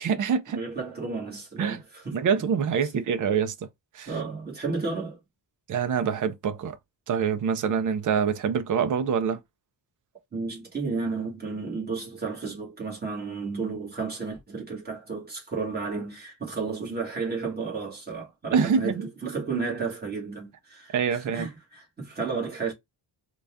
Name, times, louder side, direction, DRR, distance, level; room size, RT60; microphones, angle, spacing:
voice 1, 0.0-0.6 1.6-1.8 2.1-3.5 3.9-4.1 5.7-6.8 7.1-9.4 18.5-19.1 20.9-21.5, right 7 dB, 45° right, 0.5 m, -25 dB
voice 2, 0.5-2.2 4.1-5.2 10.3-22.7, right 4 dB, 20° right, 1.5 m, -32 dB
3.9 x 2.3 x 3.4 m
wide cardioid pair, 175°, 45 cm